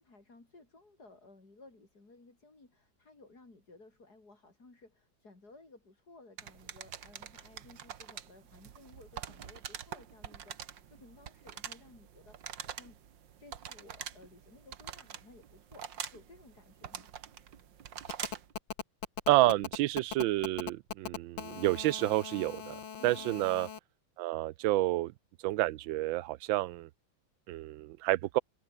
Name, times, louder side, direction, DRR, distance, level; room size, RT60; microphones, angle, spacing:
voice 1, 0.0-13.0 13.4-17.1 22.9-23.3, left 3 dB, 50° left, 5.7 m, -57 dB
sound 1, 6.4-18.5, right 9 dB, 70° right, 2.0 m, -45 dB
Telephone, 18.1-23.8, left 7 dB, 75° left, 2.6 m, -40 dB
voice 2, 19.3-23.7 24.2-25.1 25.4-26.9 27.5-28.4, right 17 dB, 90° right, 1.4 m, -29 dB
omnidirectional pair, 2.1 m